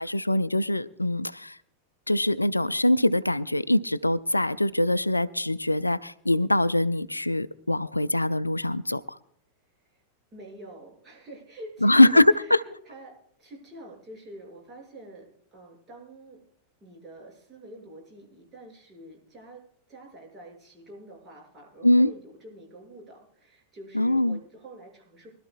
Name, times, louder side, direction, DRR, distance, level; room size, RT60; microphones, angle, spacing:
voice 1, 0.0-1.6 2.1-9.0 11.8-12.6 21.8-22.1 23.9-24.4, left 1 dB, 85° left, 18 dB, 0.4 m, -22 dB
voice 2, 10.3-16.4 16.8-19.6 19.9-25.3, right 1 dB, 20° right, -1 dB, 6.6 m, -46 dB
24.5 x 12.5 x 2.4 m, 0.70 s
figure-of-eight pair, 90°, 0 cm